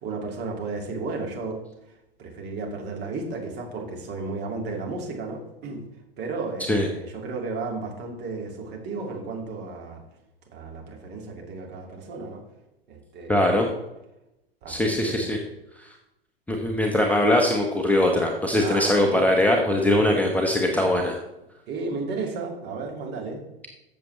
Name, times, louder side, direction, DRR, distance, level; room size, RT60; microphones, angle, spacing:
voice 1, 0.0-1.6 2.2-5.8 6.2-10.0 10.5-12.4 12.9-13.7 14.6-15.3 18.6-19.2 20.0-20.1 21.7-23.4, right 3 dB, 35° right, 1 dB, 2.3 m, -33 dB
voice 2, 13.3-13.7 14.7-15.4 16.5-21.2, left 1 dB, 5° left, 1 dB, 1.0 m, -21 dB
14.0 x 6.9 x 3.2 m, 0.90 s
figure-of-eight pair, 95°, 31 cm